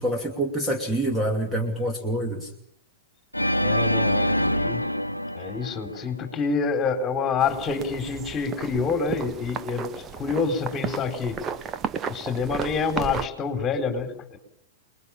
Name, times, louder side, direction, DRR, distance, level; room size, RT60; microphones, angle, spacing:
voice 1, 0.0-2.5, right 1 dB, 5° right, 3 dB, 2.7 m, -26 dB
Organ, 3.3-6.5, equal, 90° left, 0.9 m, -25 dB
voice 2, 3.6-4.9 5.3-11.4 12.1-14.4, left 5 dB, 20° left, 7 dB, 4.2 m, -27 dB
sound 1, 7.4-13.3, right 7 dB, 25° right, 1.3 m, -34 dB
27.5 x 21.0 x 7.4 m, 0.70 s
figure-of-eight pair, 100°, 0 cm